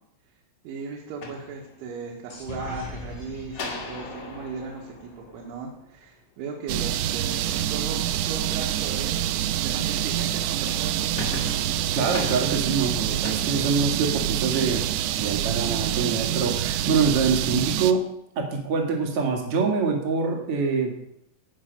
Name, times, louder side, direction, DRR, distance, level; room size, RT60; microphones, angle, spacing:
voice 1, 0.6-11.4, right 4 dB, 75° right, -2 dB, 3.8 m, -37 dB
sound 1, 1.0-2.2 3.5-6.0 10.4-14.5, left 3 dB, 55° left, 1.8 m, -40 dB
sound 2, 2.3-6.0, left 2 dB, 80° left, 6.7 m, -41 dB
sound 3, 6.7-17.9, right 11 dB, 90° right, 2.4 m, -26 dB
voice 2, 11.9-14.9 15.2-18.0 18.3-20.9, right 5 dB, 55° right, 1 dB, 1.6 m, -25 dB
17.5 x 5.9 x 5.3 m, 0.77 s
omnidirectional pair, 5.7 m